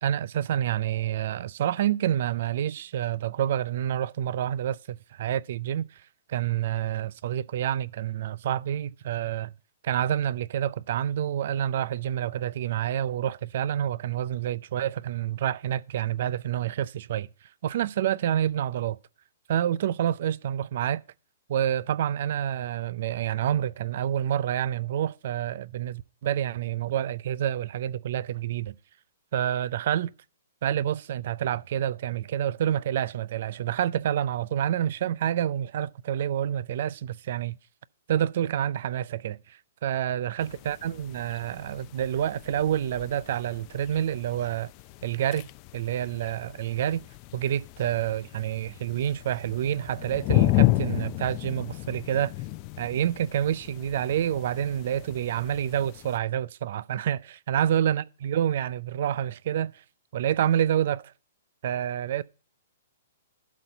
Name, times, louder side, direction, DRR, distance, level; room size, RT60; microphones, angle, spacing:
voice 1, 0.0-6.0 6.3-9.5 9.8-17.3 17.6-19.0 19.5-21.0 21.5-28.7 29.3-30.1 30.6-37.6 38.1-44.7 45.0-47.0 47.3-52.3 52.8-59.8 60.1-61.1 61.6-62.2, right 10 dB, 55° right, 0.4 m, -28 dB
sound 1, 40.4-56.2, left 18 dB, 40° left, 0.5 m, -32 dB
11.5 x 4.2 x 8.0 m
hypercardioid pair, 120°, 0 cm